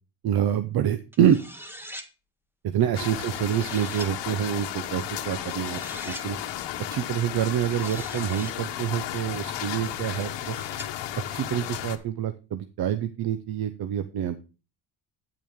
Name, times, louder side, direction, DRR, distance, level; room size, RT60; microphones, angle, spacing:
voice 1, 0.2-1.4 2.6-5.8 6.1-6.4 6.9-10.5 11.3-14.4, right 10 dB, 60° right, 10 dB, 0.8 m, -26 dB
sound 1, 1.1-2.1 3.0-4.1 5.3-6.3 7.4-8.6 9.3-10.9, equal, 5° right, 1.0 m, -44 dB
sound 2, 2.9-12.0, left 11 dB, 85° left, 1.1 m, -34 dB
8.8 x 8.2 x 3.7 m, 0.31 s
cardioid pair, 105°, 42 cm